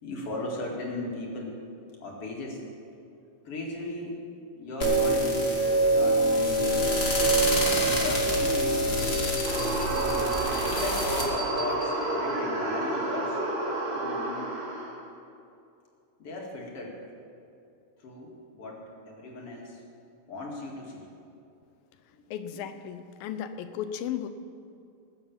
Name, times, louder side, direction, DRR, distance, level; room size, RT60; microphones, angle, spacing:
voice 1, 0.0-1.6 2.0-2.6 3.4-4.2 4.6-5.6 5.9-7.1 7.9-9.2 10.6-13.4 13.9-14.6 16.2-17.0 18.0-19.8 20.3-21.1 22.1-22.2, left 2 dB, 45° left, -2 dB, 3.0 m, -37 dB
sound 1, 4.8-11.2, right 1 dB, 20° left, 1.8 m, -25 dB
sound 2, 9.4-12.3, equal, 5° left, 3.4 m, -41 dB
sound 3, 9.4-14.9, right 2 dB, 85° right, 4.8 m, -30 dB
voice 2, 22.3-24.3, left 9 dB, 85° left, 10 dB, 2.5 m, -35 dB
20.0 x 8.5 x 7.3 m, 2.6 s
omnidirectional pair, 4.0 m